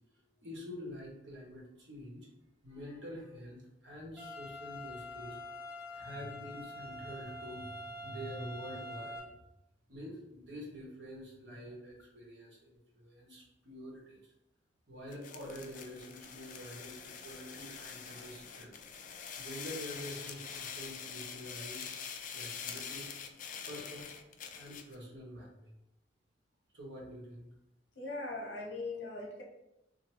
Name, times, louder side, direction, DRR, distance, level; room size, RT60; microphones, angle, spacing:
voice 1, 0.4-2.3 2.6-9.3 9.9-14.3 14.9-18.8 19.1-21.9 22.3-23.1 23.7-24.1 24.5-25.7 26.7-27.5, equal, 65° right, -4 dB, 1.3 m, -47 dB
sound 1, 4.2-9.2, left 1 dB, 10° right, 0.9 m, -45 dB
sound 2, 15.1-25.0, left 6 dB, 45° left, 0.4 m, -45 dB
voice 2, 28.0-29.4, left 2 dB, 80° left, -1 dB, 1.0 m, -40 dB
2.8 x 2.6 x 4.3 m, 0.87 s
head